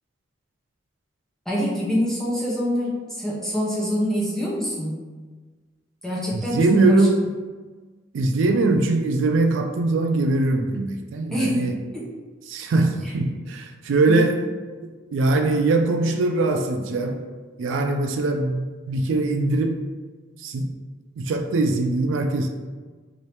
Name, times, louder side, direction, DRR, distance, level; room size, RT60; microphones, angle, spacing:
voice 1, 1.5-5.0 6.0-6.6 6.9-7.1 11.3-11.6 11.9-12.1 14.1-14.2, equal, ahead, -6 dB, 0.6 m, -25 dB
voice 2, 6.3-7.1 8.1-11.8 12.5-14.4 15.1-17.2 17.6-19.8 20.4-20.7 21.2-22.5, right 2 dB, 75° right, 5 dB, 0.3 m, -21 dB
3.0 x 2.6 x 3.2 m, 1.4 s
head